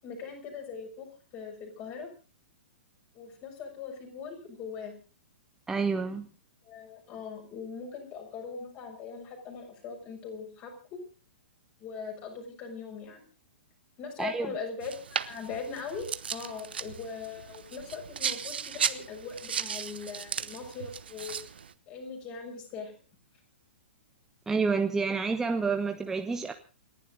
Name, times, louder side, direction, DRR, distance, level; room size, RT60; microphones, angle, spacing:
voice 1, 0.0-1.1 1.3-2.1 3.1-4.9 6.6-11.0 11.8-13.2 14.0-21.4 21.9-22.9, left 5 dB, 30° left, 3 dB, 6.3 m, -40 dB
voice 2, 5.7-6.3 14.2-14.5 24.5-26.5, right 4 dB, 5° right, 6 dB, 1.0 m, -29 dB
sound 1, 14.8-21.7, right 7 dB, 60° right, 1.1 m, -36 dB
29.0 x 11.5 x 3.9 m, 0.35 s
figure-of-eight pair, 110°, 6 cm